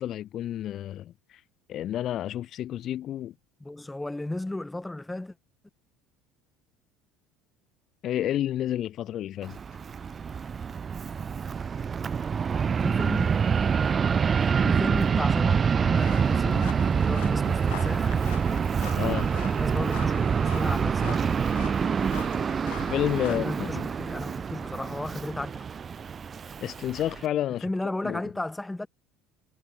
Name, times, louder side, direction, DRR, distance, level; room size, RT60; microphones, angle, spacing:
voice 1, 0.0-1.4 1.7-3.3 8.0-9.6 19.0-19.3 22.9-23.9 26.6-27.7 28.0-28.3, left 12 dB, 50° left, 0.8 m, -30 dB
voice 2, 3.6-5.4 12.8-13.3 14.6-18.2 19.5-21.7 23.3-25.5 27.6-28.9, left 2 dB, 10° left, 1.8 m, -34 dB
Fixed-wing aircraft airplane, 9.4-27.3, right 6 dB, 30° right, 1.4 m, -26 dB
sound 1, 15.9-23.4, left 22 dB, 85° left, 4.1 m, -44 dB
supercardioid pair, 100°, 0 cm